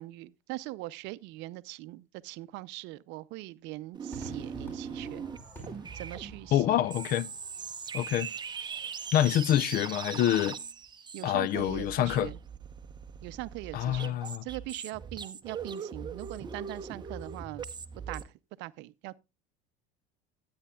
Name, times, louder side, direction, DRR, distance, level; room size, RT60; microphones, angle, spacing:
voice 1, 0.0-5.3 5.9-6.8 11.1-12.4 13.2-17.6 18.1-19.2, right 19 dB, 65° right, 0.6 m, -41 dB
sound 1, 3.9-18.2, right 6 dB, 20° right, 0.8 m, -41 dB
Crowd / Fireworks, 4.1-10.7, right 2 dB, 10° left, 4.6 m, -50 dB
voice 2, 6.5-7.3 7.9-8.3 9.1-10.6 11.2-12.3 13.7-14.4, left 12 dB, 45° left, 0.5 m, -26 dB
14.5 x 8.6 x 2.3 m
supercardioid pair, 110°, 20 cm